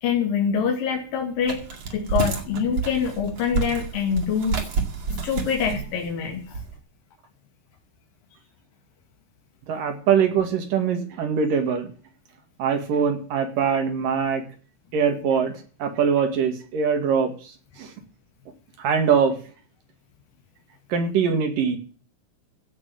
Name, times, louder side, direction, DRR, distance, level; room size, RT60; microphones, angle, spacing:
voice 1, 0.0-4.7 5.2-6.5, left 7 dB, 80° left, 1 dB, 3.9 m, -25 dB
sound 1, 1.4-6.7, right 4 dB, 50° right, 3.2 m, -29 dB
voice 2, 9.7-11.9 12.6-14.4 14.9-15.5 15.8-17.5 17.8-17.9 18.8-19.4 20.9-21.8, right 6 dB, 75° right, 6 dB, 3.9 m, -22 dB
16.0 x 6.4 x 7.6 m, 0.41 s
omnidirectional pair, 3.9 m